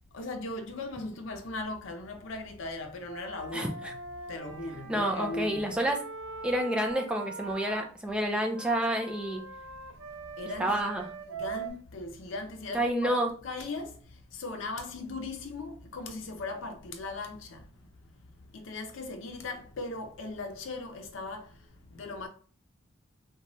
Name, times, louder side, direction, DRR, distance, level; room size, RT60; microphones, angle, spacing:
voice 1, 0.1-4.0 4.3-5.8 10.4-10.8 11.3-13.1 13.4-14.0 14.3-17.6 18.5-21.5 21.9-22.3, left 2 dB, 80° left, 0.5 m, -38 dB
Wind instrument woodwind instrument, 3.0-7.9 8.5-11.7, right 4 dB, 80° right, 0.4 m, -42 dB
voice 2, 4.9-6.0 6.4-9.4 10.6-11.1 12.7-13.3, right 1 dB, 5° right, 0.3 m, -29 dB
3.0 x 2.2 x 2.6 m
head